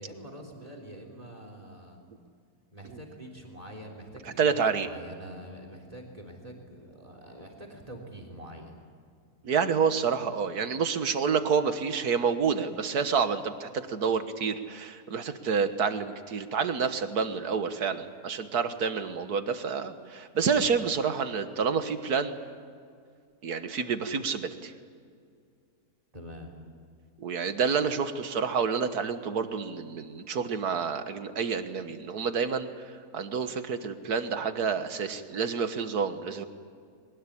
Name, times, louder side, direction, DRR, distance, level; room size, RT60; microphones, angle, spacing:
voice 1, 0.0-2.0 2.7-8.8 26.1-26.5, equal, 20° right, 3 dB, 3.7 m, -45 dB
voice 2, 4.4-4.9 9.4-22.4 23.4-24.7 27.2-36.5, right 6 dB, 70° right, 9 dB, 1.9 m, -28 dB
22.5 x 20.5 x 9.9 m, 2.2 s
omnidirectional pair, 1.7 m